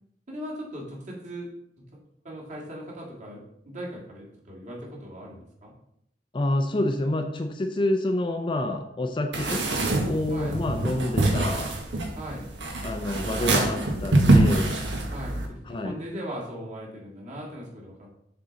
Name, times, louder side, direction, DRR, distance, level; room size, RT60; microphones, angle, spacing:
voice 1, 0.3-1.5 2.2-5.7 9.4-9.6 10.3-10.6 12.2-12.5 15.1-18.2, equal, 45° right, -3 dB, 1.8 m, -39 dB
voice 2, 6.3-9.6 10.1-11.7 12.8-14.7 15.7-16.0, left 1 dB, 30° left, 5 dB, 0.5 m, -28 dB
sound 1, 9.3-15.5, right 2 dB, 90° right, 1.1 m, -24 dB
6.8 x 3.8 x 3.9 m, 0.74 s
head